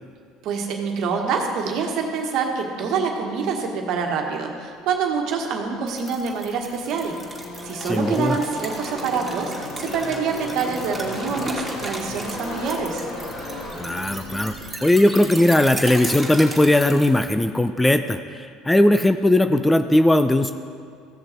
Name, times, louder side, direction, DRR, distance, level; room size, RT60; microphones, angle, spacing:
voice 1, 0.4-13.1, right 5 dB, 60° right, 2 dB, 1.5 m, -26 dB
sound 1, 5.9-17.1, right 1 dB, 5° right, 2.7 m, -36 dB
Car passing by / Race car auto racing, 6.2-16.7, left 1 dB, 45° left, 2.6 m, -35 dB
voice 2, 7.9-8.3 13.8-14.5 14.8-20.5, left 1 dB, 10° left, 9 dB, 0.5 m, -18 dB
15.5 x 6.6 x 4.4 m, 2.2 s
hypercardioid pair, 70°, 0 cm